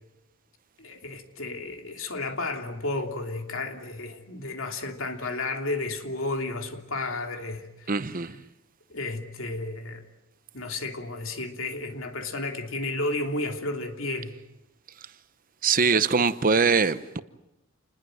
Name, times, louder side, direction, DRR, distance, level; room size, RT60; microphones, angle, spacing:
voice 1, 0.8-7.9 8.9-10.0 10.5-14.3, left 2 dB, 65° left, 3.1 m, -32 dB
voice 2, 7.9-8.4 15.6-17.2, right 5 dB, 40° right, 0.8 m, -22 dB
29.0 x 20.5 x 7.9 m
head